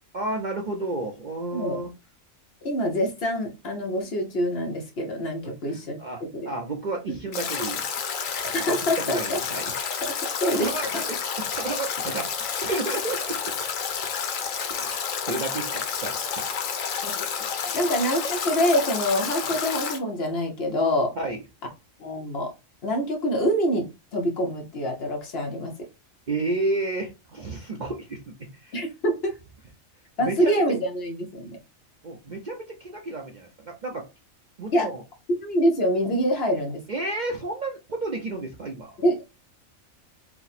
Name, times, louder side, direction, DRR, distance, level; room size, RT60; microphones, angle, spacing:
voice 1, 0.1-1.9 5.4-7.8 8.4-8.8 9.0-9.7 10.5-10.9 11.4-12.3 12.6-13.5 14.7-15.0 15.2-16.4 17.6-17.8 21.2-21.4 26.3-28.9 30.2-30.6 32.0-34.0 34.6-35.0 36.9-38.9, right 2 dB, 45° right, 1 dB, 0.6 m, -31 dB
voice 2, 2.6-6.5 8.3-9.4 10.0-10.1 10.4-11.0 17.0-17.1 17.7-21.1 22.0-22.5 22.8-25.7 28.7-29.4 30.2-31.6 34.7-34.9 35.3-36.8 39.0-39.3, equal, 50° left, 2 dB, 1.1 m, -25 dB
Stream / Drip / Trickle dribble, 7.3-20.0, left 6 dB, 75° left, 1.2 m, -30 dB
4.6 x 2.1 x 4.1 m, 0.26 s
omnidirectional pair, 1.4 m